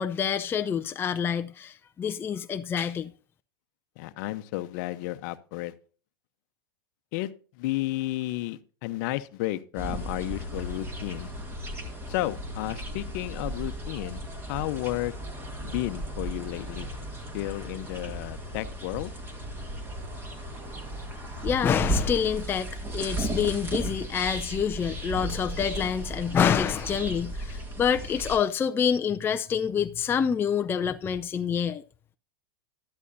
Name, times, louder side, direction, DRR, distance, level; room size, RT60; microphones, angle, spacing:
voice 1, 0.0-3.1 21.4-31.8, left 7 dB, 20° left, 0.5 m, -27 dB
voice 2, 4.0-5.7 7.1-7.3 7.6-11.3 12.1-15.1 15.6-16.9 17.3-19.1, left 17 dB, 55° left, 0.8 m, -32 dB
sound 1, 9.8-28.4, right 1 dB, 20° right, 2.3 m, -35 dB
12.5 x 11.0 x 2.7 m
hypercardioid pair, 115°, 12 cm